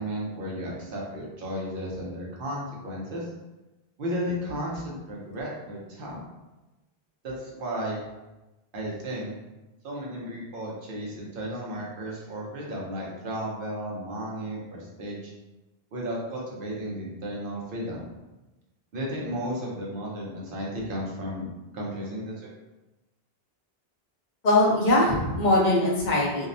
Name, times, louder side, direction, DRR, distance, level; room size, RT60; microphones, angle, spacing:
voice 1, 0.0-3.3 4.0-6.2 7.2-8.0 8.7-9.3 9.8-15.3 15.9-18.1 18.9-21.4 21.7-22.5, equal, 65° right, -4 dB, 0.9 m, -34 dB
voice 2, 24.4-26.5, left 1 dB, 55° left, -2 dB, 0.6 m, -21 dB
2.7 x 2.0 x 2.6 m, 1.1 s
omnidirectional pair, 1.0 m